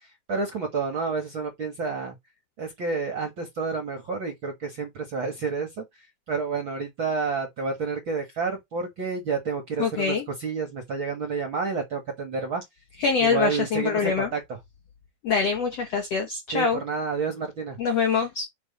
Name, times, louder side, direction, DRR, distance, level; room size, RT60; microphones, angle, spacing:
voice 1, 0.3-2.1 2.6-5.8 6.3-12.6 13.2-14.4 16.5-17.8, right 4 dB, 50° right, 1.4 m, -29 dB
voice 2, 9.8-10.2 13.0-14.3 15.2-16.8 17.8-18.5, left 5 dB, 80° left, 1.4 m, -24 dB
6.3 x 5.5 x 4.2 m
omnidirectional pair, 4.6 m